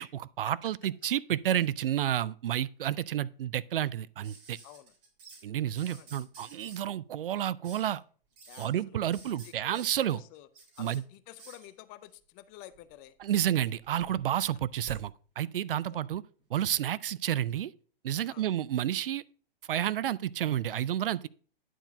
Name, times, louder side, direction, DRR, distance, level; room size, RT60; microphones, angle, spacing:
voice 1, 0.0-4.6 5.4-8.0 8.6-10.2 10.8-11.0 13.2-16.2 16.5-17.7 18.0-19.2 19.7-21.3, right 11 dB, 70° right, 0.5 m, -30 dB
sound 1, 4.2-5.4 5.7-6.8 7.6-7.9 8.3-8.7 9.1-11.0 11.4-11.7 12.7-13.3 13.6-15.0 16.4-16.5, right 4 dB, 35° right, 3.3 m, -51 dB
voice 2, 4.6-4.9 5.9-6.1 8.5-10.5 10.8-13.1 15.9-16.0 18.3-18.5, left 14 dB, 30° left, 0.6 m, -51 dB
10.0 x 4.6 x 5.0 m
figure-of-eight pair, 115°, 29 cm